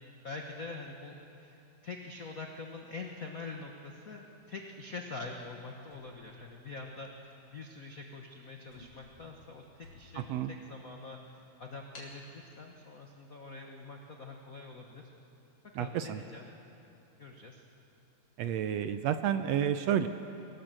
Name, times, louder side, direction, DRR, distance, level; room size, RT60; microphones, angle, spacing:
voice 1, 0.2-1.6 1.8-15.1 15.7-16.5 17.2-17.6, left 3 dB, 65° left, 2 dB, 0.8 m, -45 dB
sound 1, 5.9-7.1 7.8-8.0 8.3-8.4 8.6-10.4 10.9-11.0 11.9-12.2, left 2 dB, 45° left, 4.5 m, -55 dB
voice 2, 10.2-10.5 15.8-16.2 18.4-20.1, right 9 dB, 75° right, 10 dB, 1.6 m, -30 dB
24.0 x 18.5 x 7.5 m, 2.9 s
omnidirectional pair, 3.4 m